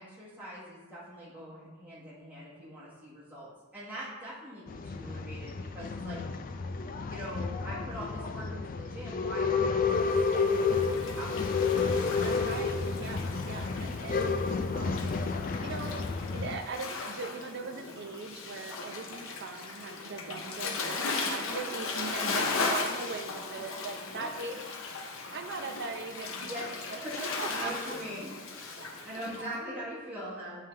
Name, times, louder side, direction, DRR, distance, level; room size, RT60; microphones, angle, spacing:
voice 1, 0.0-6.2 7.0-11.6 20.2-20.3 24.0-24.6 26.4-28.3 29.0-30.7, equal, 10° right, -9 dB, 1.5 m, -42 dB
Male speech man speaking / Chatter / Rattle, 4.7-16.6, left 4 dB, 40° left, 0.4 m, -31 dB
Waves surf, 10.0-29.5, left 3 dB, 70° left, 0.7 m, -37 dB
voice 2, 12.2-24.8 25.3-28.0 28.8-29.6, right 4 dB, 55° right, 5 dB, 0.6 m, -41 dB
9.2 x 3.7 x 3.3 m, 1.3 s
head